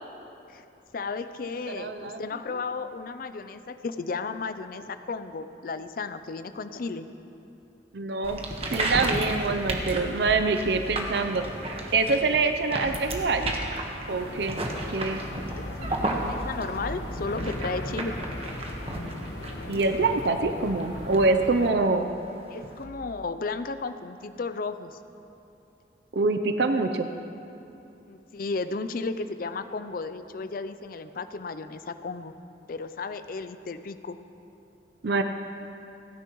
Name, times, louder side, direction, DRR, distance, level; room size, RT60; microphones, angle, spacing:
voice 1, 0.9-7.1 15.5-18.1 22.5-25.0 28.1-32.3 32.7-34.2, left 4 dB, 50° left, 10 dB, 0.5 m, -34 dB
voice 2, 1.8-2.2 7.9-8.4 8.7-11.4 11.9-13.6 14.1-14.6 14.9-15.2 19.7-22.1 26.1-27.1 35.0-35.2, right 3 dB, 65° right, 7 dB, 0.6 m, -25 dB
sound 1, 8.2-22.8, right 1 dB, 35° right, 1.3 m, -34 dB
sound 2, 14.1-21.7, left 1 dB, 75° left, 1.3 m, -37 dB
28.5 x 10.5 x 3.1 m, 2.8 s
head